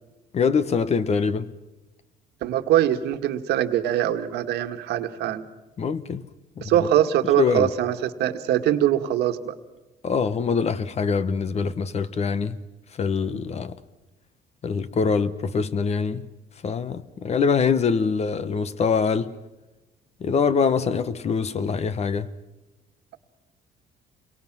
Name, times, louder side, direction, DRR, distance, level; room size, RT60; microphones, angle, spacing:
voice 1, 0.3-1.5 5.8-6.3 6.6-6.7 7.4-7.7 10.0-12.6 13.0-13.8 14.6-16.3 16.6-19.3 20.2-22.3, left 5 dB, 40° left, 1.1 m, -24 dB
voice 2, 2.4-5.4 6.6-9.5, right 11 dB, 80° right, 1.6 m, -23 dB
29.0 x 23.0 x 6.1 m
cardioid pair, 110°, 17 cm